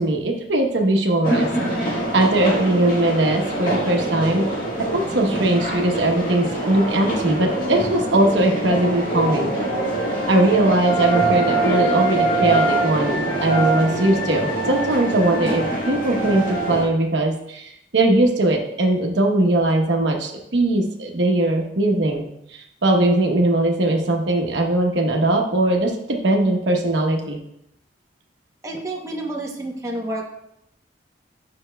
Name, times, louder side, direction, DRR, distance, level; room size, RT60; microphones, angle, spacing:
voice 1, 0.0-4.4 4.9-9.5 10.3-22.2 22.5-27.4, right 1 dB, 75° right, 2 dB, 0.9 m, -20 dB
sound 1, 1.2-16.8, right 2 dB, 50° left, 1.6 m, -24 dB
voice 2, 28.6-30.3, right 1 dB, 20° right, -1 dB, 0.8 m, -29 dB
8.7 x 5.8 x 2.2 m, 0.77 s
head